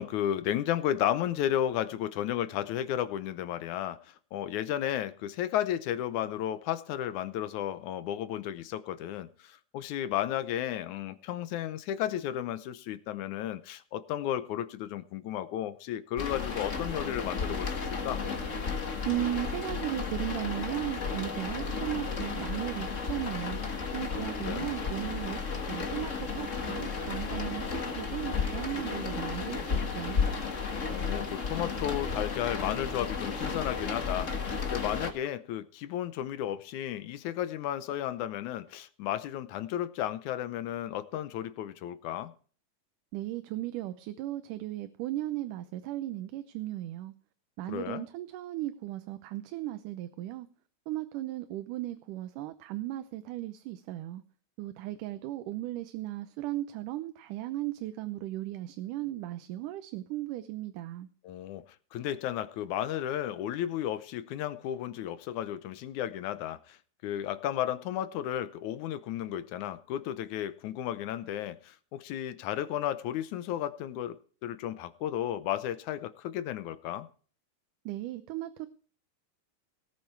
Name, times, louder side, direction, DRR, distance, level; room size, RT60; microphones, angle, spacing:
voice 1, 0.0-18.2 24.2-24.7 30.9-42.3 47.7-48.0 61.2-61.6 61.9-66.8 67.0-77.1, left 11 dB, 75° left, 13 dB, 2.2 m, -33 dB
sound 1, 16.2-35.1, left 5 dB, 30° left, 1.5 m, -33 dB
voice 2, 19.1-23.6 23.9-25.4 25.7-30.3 43.1-47.1 47.6-50.5 50.9-54.2 54.6-61.1 77.9-78.7, right 15 dB, 85° right, 11 dB, 2.4 m, -36 dB
18.0 x 8.8 x 4.6 m, 0.43 s
omnidirectional pair, 3.6 m